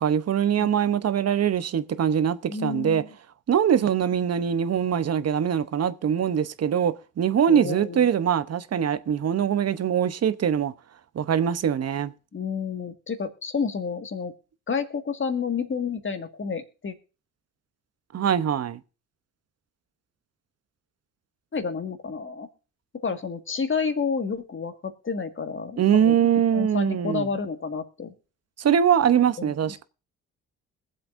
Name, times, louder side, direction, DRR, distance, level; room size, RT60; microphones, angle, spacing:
voice 1, 0.0-3.0 3.5-10.7 11.1-12.1 18.1-18.8 25.8-27.3 28.6-29.8, right 8 dB, 45° right, 0.9 m, -23 dB
voice 2, 2.5-3.1 7.5-8.1 12.3-14.3 14.7-16.9 21.5-22.5 23.0-28.1 29.4-29.7, left 5 dB, 35° left, 1.9 m, -30 dB
21.5 x 7.8 x 2.6 m
supercardioid pair, 65°, 34 cm